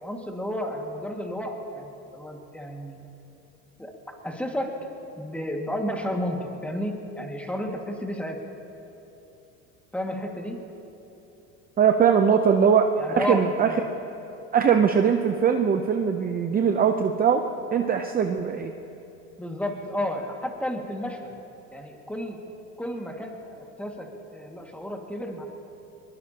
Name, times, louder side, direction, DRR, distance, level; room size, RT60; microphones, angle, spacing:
voice 1, 0.0-3.0 3.8-3.9 4.2-4.7 5.2-8.4 9.9-10.7 13.0-13.9 19.4-21.3 21.7-22.4 22.8-25.4, equal, 5° left, 1 dB, 2.0 m, -32 dB
voice 2, 11.8-12.9 13.1-13.7 14.5-17.4 17.7-18.7, right 7 dB, 25° right, 5 dB, 0.7 m, -21 dB
22.0 x 21.5 x 2.9 m, 2.9 s
supercardioid pair, 115°, 34 cm